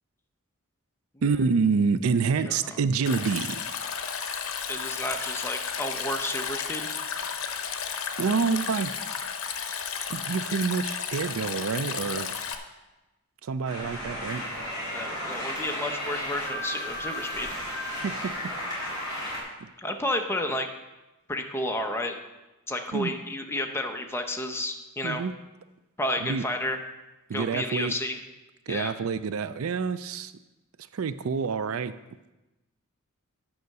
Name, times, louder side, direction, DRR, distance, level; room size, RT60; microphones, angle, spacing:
voice 1, 1.2-3.6 8.2-8.9 10.1-12.4 13.4-14.4 18.0-18.3 19.6-19.7 22.9-23.1 25.0-25.3 26.2-26.5 27.3-27.9 28.7-30.3 30.9-31.9, right 5 dB, 75° right, 14 dB, 0.4 m, -27 dB
Stream, 3.1-12.6, left 7 dB, 70° left, 0.9 m, -33 dB
voice 2, 4.7-6.9 14.9-17.5 19.8-20.7 21.3-22.2 22.7-25.2 26.0-26.8 27.3-28.2 28.7-28.9, left 1 dB, 10° left, 3 dB, 0.8 m, -31 dB
sound 1, 13.6-19.4, equal, 20° right, 4.1 m, -34 dB
9.4 x 5.8 x 6.6 m, 1.0 s
head